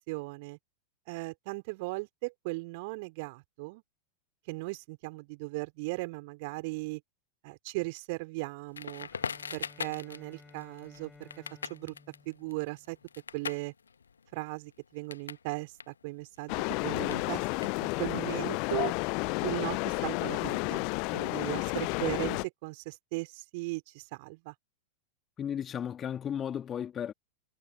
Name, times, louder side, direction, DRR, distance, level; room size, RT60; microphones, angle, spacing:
voice 1, 0.1-0.6 1.1-3.8 4.5-7.0 7.4-9.1 9.5-11.3 11.7-11.9 12.3-13.0 13.3-13.7 14.3-17.4 17.8-18.9 19.4-20.9 21.1-24.5, right 26 dB, 50° right, 4.5 m, -37 dB
Crackle, 8.7-15.5 15.7-18.2, left 6 dB, 70° left, 1.0 m, -42 dB
Bowed string instrument, 9.1-13.2, left 3 dB, 10° left, 4.5 m, -56 dB
sound 1, 16.5-22.4, left 34 dB, 45° left, 0.4 m, -31 dB
voice 2, 25.4-27.1, left 9 dB, 25° left, 1.9 m, -34 dB
figure-of-eight pair, 90°, 0 cm